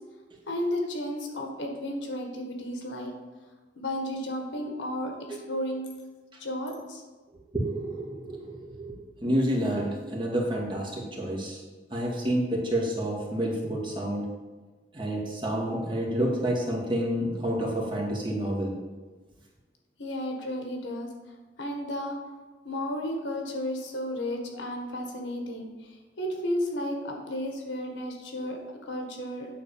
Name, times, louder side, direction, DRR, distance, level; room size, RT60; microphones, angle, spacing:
voice 1, 0.5-3.1 3.7-5.1 5.5-5.9 6.4-7.0 20.0-21.1 21.6-22.2 22.6-25.7 26.2-29.5, left 1 dB, 75° left, 2 dB, 1.6 m, -33 dB
voice 2, 7.5-11.6 11.9-14.3 14.9-18.8, right 1 dB, 25° right, -2 dB, 1.9 m, -29 dB
9.0 x 4.0 x 7.0 m, 1.3 s
head